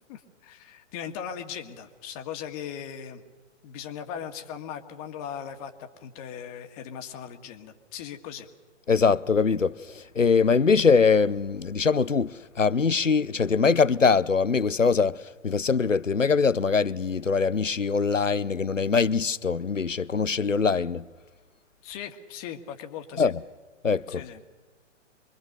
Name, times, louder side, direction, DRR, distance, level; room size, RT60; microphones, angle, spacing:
voice 1, 0.1-3.2 3.6-8.5 21.8-23.3 24.1-24.4, left 8 dB, 30° left, 1.8 m, -38 dB
voice 2, 8.9-21.0 23.2-23.4 23.8-24.2, left 5 dB, 90° left, 0.8 m, -23 dB
25.0 x 23.0 x 6.8 m
figure-of-eight pair, 120°, 37 cm